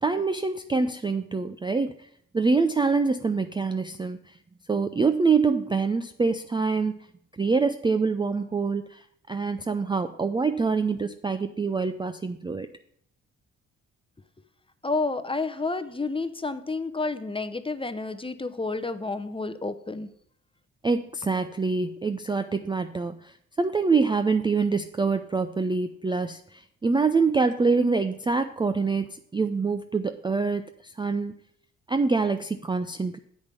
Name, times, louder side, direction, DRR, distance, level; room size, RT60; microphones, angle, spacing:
voice 1, 0.0-2.1 2.3-4.3 4.7-7.0 7.4-12.7 20.8-31.3 31.9-33.2, right 4 dB, 15° right, 9 dB, 0.4 m, -25 dB
voice 2, 14.8-20.1, left 3 dB, 15° left, 10 dB, 0.8 m, -30 dB
8.1 x 5.1 x 6.7 m, 0.67 s
hypercardioid pair, 45°, 36 cm